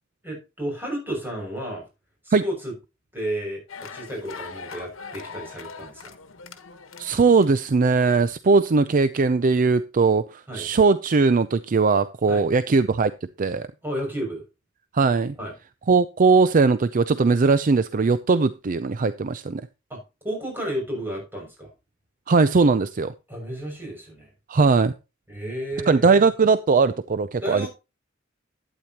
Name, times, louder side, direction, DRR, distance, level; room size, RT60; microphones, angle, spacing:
voice 1, 0.2-1.8 2.2-2.7 3.1-6.2 10.5-10.7 12.3-12.4 13.8-14.4 15.4-15.5 19.9-21.7 23.3-24.3 25.3-26.3 27.4-27.7, right 1 dB, 10° right, 0 dB, 6.2 m, -32 dB
sound 1, 3.7-7.7, left 5 dB, 80° left, 1.3 m, -41 dB
voice 2, 7.0-13.7 14.9-15.4 15.9-19.6 22.3-23.1 24.5-24.9 25.9-27.7, right 4 dB, 45° right, 14 dB, 0.5 m, -19 dB
12.0 x 9.3 x 2.9 m, 0.27 s
head